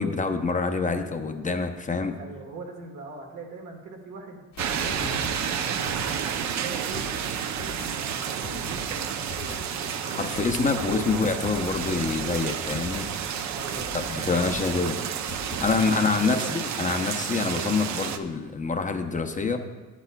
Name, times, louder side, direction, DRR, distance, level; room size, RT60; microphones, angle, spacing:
voice 1, 0.0-2.1 10.0-13.1 13.9-15.0 15.6-19.6, left 4 dB, 25° left, 6 dB, 0.6 m, -26 dB
voice 2, 2.1-7.1 7.4-10.3 13.5-14.3 16.1-16.5, right 3 dB, 85° right, 1 dB, 1.5 m, -41 dB
sound 1, 4.5-15.8, left 4 dB, 70° left, 1.2 m, -41 dB
sound 2, 4.6-18.2, right 8 dB, 65° right, 0.6 m, -31 dB
11.5 x 8.2 x 2.3 m, 1.2 s
cardioid pair, 90°, 30 cm